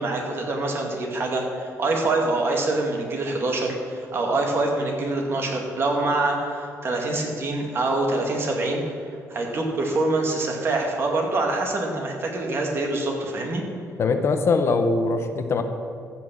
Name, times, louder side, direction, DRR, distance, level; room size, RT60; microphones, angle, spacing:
voice 1, 0.0-8.8 9.3-13.6, right 2 dB, 45° right, 1 dB, 2.2 m, -25 dB
voice 2, 14.0-15.6, left 3 dB, 50° left, 7 dB, 0.9 m, -22 dB
14.5 x 6.0 x 7.2 m, 2.3 s
cardioid pair, 130°, 6 cm